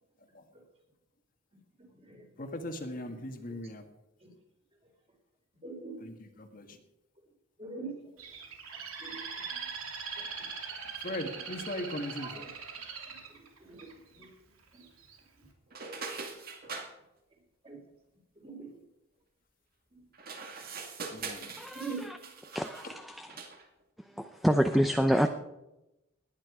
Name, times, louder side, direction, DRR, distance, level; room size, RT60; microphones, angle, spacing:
voice 1, 1.8-2.3 3.5-3.6 4.2-4.4 5.6-6.0 6.6-6.8 7.6-8.0 8.7-9.6 10.2-10.5 11.7-11.8 12.2-12.5 12.7-14.9 15.3-15.5 15.9-16.1 16.6-16.7 17.3-17.8 18.4-18.8 19.9-20.0 20.6-20.8 21.5-22.1 24.1-24.3, right 4 dB, 30° right, 1 dB, 3.9 m, -46 dB
voice 2, 2.4-3.8 6.0-6.8 10.1-10.2 11.0-12.5 21.1-21.7 22.8-22.9 24.7-25.2, left 1 dB, 40° left, 5 dB, 1.6 m, -39 dB
Bird, 8.2-14.2 14.8-15.2, right 6 dB, 85° right, 3.0 m, -41 dB
sound 1, 15.7-16.9 20.1-22.9 23.3-23.6, right 4 dB, 45° right, 2.1 m, -42 dB
voice 3, 22.5-22.9 24.2-25.3, equal, ahead, 6 dB, 0.7 m, -26 dB
19.5 x 10.5 x 4.9 m, 0.91 s
head